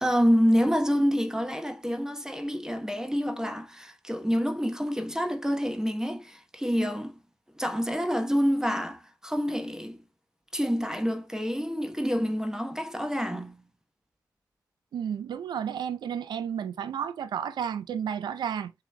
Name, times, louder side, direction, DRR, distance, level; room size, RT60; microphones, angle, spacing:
voice 1, 0.0-7.2 7.6-10.0 10.5-13.6, equal, 10° right, 1.0 m, -27 dB
voice 2, 14.9-18.7, right 8 dB, 85° right, 0.5 m, -32 dB
7.1 x 2.9 x 2.2 m
cardioid pair, 50°, 7 cm